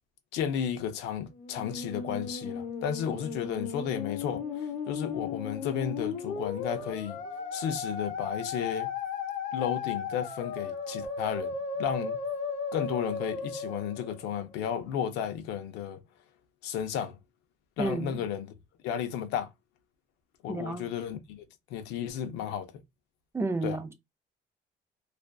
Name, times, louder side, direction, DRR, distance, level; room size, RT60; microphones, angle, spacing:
voice 1, 0.3-7.2 7.5-8.9 9.5-12.2 12.7-16.0 16.6-17.2 17.8-18.5 18.8-19.5 20.4-21.4 21.7-22.7 23.6-23.8, left 8 dB, 90° left, 0.5 m, -33 dB
Musical instrument, 1.3-14.6, left 5 dB, 50° left, 0.8 m, -36 dB
voice 2, 17.8-18.2 20.5-20.9 23.3-23.9, right 3 dB, 15° right, 0.4 m, -31 dB
2.4 x 2.4 x 2.2 m
cardioid pair, 110°, 17 cm